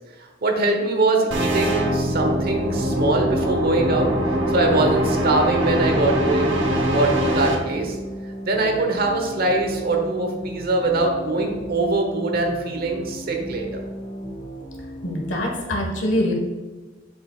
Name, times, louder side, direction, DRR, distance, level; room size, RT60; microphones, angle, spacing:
voice 1, 0.4-4.1 4.5-6.5 6.8-8.0 8.4-13.8, right 2 dB, 55° right, 2 dB, 1.1 m, -22 dB
sound 1, 1.3-7.6, right 1 dB, 80° right, 1.0 m, -22 dB
sound 2, 1.9-15.4, right 1 dB, 20° left, 1.3 m, -36 dB
voice 2, 15.0-16.3, left 1 dB, 75° left, 0 dB, 1.5 m, -24 dB
7.2 x 5.9 x 2.4 m, 1.3 s
head